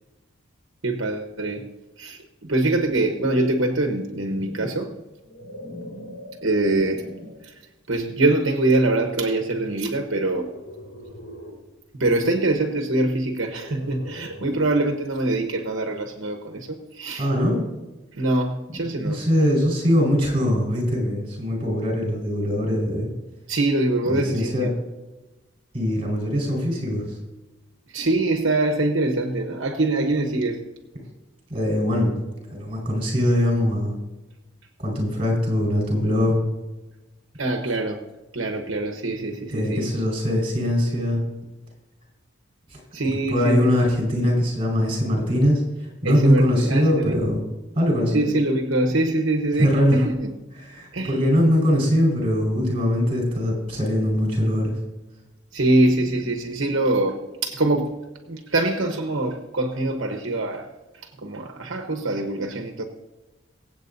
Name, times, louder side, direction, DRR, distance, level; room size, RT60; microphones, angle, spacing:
voice 1, 0.8-1.7 2.0-2.2 2.5-4.9 6.4-7.1 7.4-7.6 7.9-10.5 11.9-17.3 18.1-19.2 23.5-24.7 27.9-30.6 37.4-38.0 38.3-39.8 42.9-43.8 46.0-47.2 48.1-50.3 50.9-51.2 55.5-58.0 58.3-60.7 61.2-62.8, right 2 dB, 65° right, 3 dB, 1.1 m, -24 dB
sound 1, 3.8-7.5 8.1-8.4 10.2-11.7 13.4-14.8, equal, 80° left, 4.2 m, -41 dB
voice 2, 17.2-17.7 19.0-23.1 24.0-24.7 25.7-27.0 31.5-32.1 32.5-33.9 34.8-36.4 39.5-41.2 42.7-42.8 43.3-47.4 47.7-48.2 49.6-50.0 50.6-54.7, equal, 25° right, -1 dB, 4.7 m, -22 dB
24.0 x 8.3 x 2.7 m, 1.1 s
head